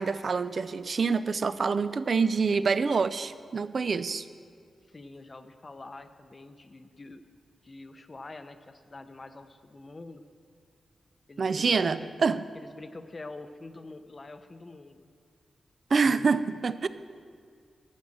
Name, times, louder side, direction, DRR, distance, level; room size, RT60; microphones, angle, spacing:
voice 1, 0.0-4.2 11.4-12.5 15.9-16.9, right 5 dB, 50° right, 14 dB, 0.4 m, -26 dB
voice 2, 4.9-7.2 7.6-10.2 11.3-12.1 12.5-15.1, left 2 dB, 30° left, 10 dB, 0.7 m, -46 dB
11.5 x 6.3 x 7.4 m, 2.1 s
wide cardioid pair, 95°, 0 cm